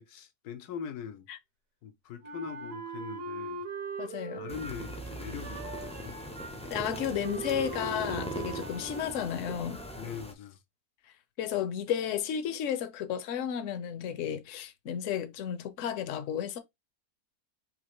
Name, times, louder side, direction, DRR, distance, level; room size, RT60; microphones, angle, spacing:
voice 1, 0.0-1.3 1.8-3.6 4.3-6.2 10.0-10.6, left 7 dB, 85° left, 1.3 m, -42 dB
Wind instrument woodwind instrument, 2.2-9.8, right 3 dB, 60° right, 1.6 m, -41 dB
voice 2, 4.0-4.4 6.7-9.8 11.4-16.6, left 9 dB, 60° left, 1.0 m, -33 dB
sound 1, 4.5-10.3, equal, 10° left, 0.3 m, -40 dB
5.3 x 2.8 x 3.0 m
omnidirectional pair, 1.6 m